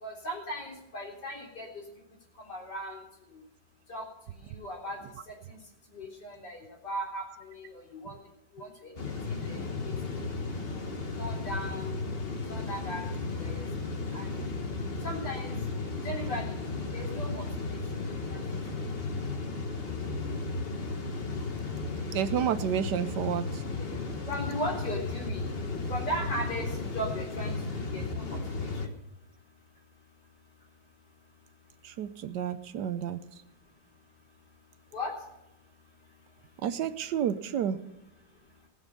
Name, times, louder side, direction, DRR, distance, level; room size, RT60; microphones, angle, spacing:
voice 1, 0.0-1.7 2.5-3.0 3.9-4.0 4.4-5.0 5.3-5.6 5.9-8.2 8.6-8.7 9.4-9.9 11.2-12.0 12.5-13.1 13.3-13.6 14.1-14.3 15.0-15.6 16.0-16.6 16.9-17.4 17.7-17.8 18.3-18.4 23.8-23.9 24.3-25.5 25.9-27.6 27.9-28.7 34.9-35.1, equal, 65° left, -1 dB, 4.4 m, -37 dB
sound 1, 9.0-28.9, left 3 dB, 35° left, 1.4 m, -34 dB
voice 2, 22.1-23.5 31.8-33.2 36.6-37.8, right 9 dB, 70° right, 12 dB, 1.2 m, -30 dB
19.0 x 7.3 x 6.8 m, 0.91 s
omnidirectional pair, 2.0 m